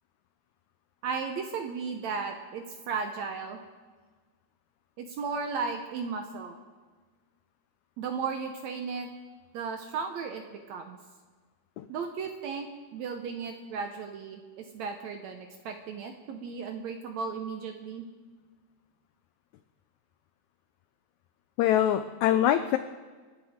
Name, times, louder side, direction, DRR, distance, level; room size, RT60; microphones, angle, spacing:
voice 1, 1.0-3.6 5.0-6.6 8.0-9.1 9.5-11.0 11.9-18.1, right 5 dB, 70° right, 5 dB, 1.8 m, -35 dB
voice 2, 21.6-22.8, left 11 dB, 85° left, 10 dB, 1.6 m, -24 dB
28.0 x 10.0 x 3.6 m, 1.4 s
omnidirectional pair, 4.0 m